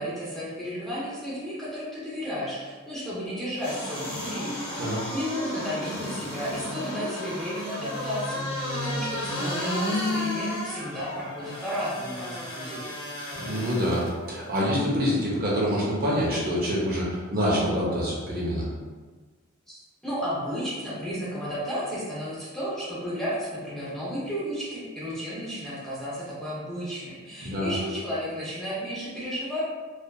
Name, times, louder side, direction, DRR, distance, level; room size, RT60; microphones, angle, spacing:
voice 1, 0.0-8.4 8.7-12.9 19.7-29.6, equal, ahead, -9 dB, 0.6 m, -33 dB
sound 1, 3.6-14.1 14.6-14.7, left 1 dB, 60° left, 1.0 m, -32 dB
voice 2, 13.3-18.7 27.4-27.7, equal, 45° right, -5 dB, 0.7 m, -26 dB
2.7 x 2.3 x 2.3 m, 1.4 s
head